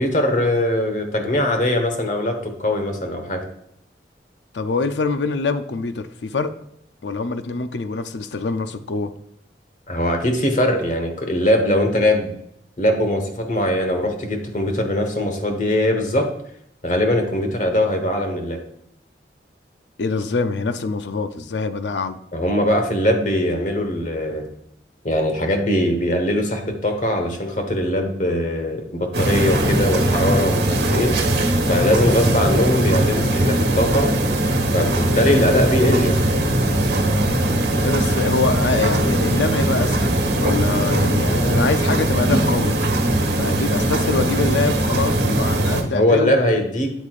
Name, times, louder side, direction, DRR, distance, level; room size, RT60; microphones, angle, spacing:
voice 1, 0.0-3.4 9.9-12.3 12.8-16.3 16.8-18.6 22.3-24.4 25.0-31.2 31.6-34.1 34.7-36.2 45.9-46.9, left 1 dB, 45° left, 1.3 m, -21 dB
voice 2, 4.5-6.5 7.0-9.1 20.0-22.2 35.2-35.4 37.8-42.8 43.4-46.3, left 4 dB, 80° left, 0.5 m, -24 dB
sound 1, 29.1-45.8, right 1 dB, 70° right, 1.2 m, -20 dB
8.5 x 8.3 x 2.5 m
head